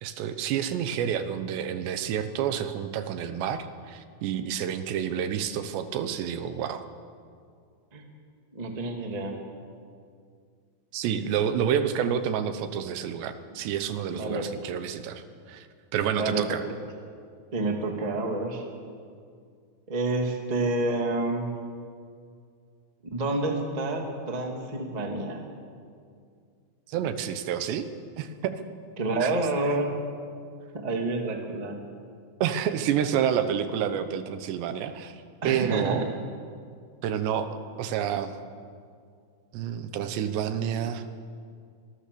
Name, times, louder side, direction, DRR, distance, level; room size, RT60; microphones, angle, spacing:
voice 1, 0.0-6.8 10.9-15.7 15.9-16.6 26.9-27.9 28.2-28.5 29.2-29.3 32.4-36.1 37.0-38.4 39.5-41.1, right 9 dB, 80° right, 10 dB, 3.2 m, -29 dB
voice 2, 8.5-9.4 14.1-14.5 16.1-16.4 17.5-18.6 19.9-21.5 23.1-25.4 29.0-29.9 30.7-31.8 35.4-36.1, right 2 dB, 20° right, 2 dB, 1.2 m, -28 dB
25.5 x 20.0 x 6.9 m, 2.2 s
omnidirectional pair, 5.0 m